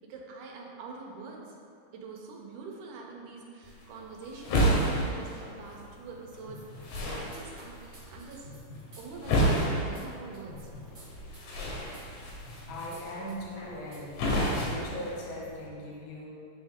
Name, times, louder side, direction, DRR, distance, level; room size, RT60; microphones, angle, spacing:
voice 1, 0.0-1.6 1.9-6.6 7.1-8.5 9.0-10.7, right 4 dB, 85° right, -1 dB, 2.2 m, -45 dB
sound 1, 3.6-15.7, equal, 90° left, 2.5 m, -32 dB
sound 2, 6.5-7.0 7.3-9.0 9.3-9.6 9.9-10.0 10.3-11.0 11.3-11.6 11.9-12.0 12.4-13.0 13.3-13.4 13.9-14.0, left 1 dB, 50° right, 0.8 m, -48 dB
voice 2, 12.7-14.2 14.5-16.3, left 1 dB, 70° left, -3 dB, 1.0 m, -39 dB
8.6 x 3.2 x 3.6 m, 2.6 s
omnidirectional pair, 3.5 m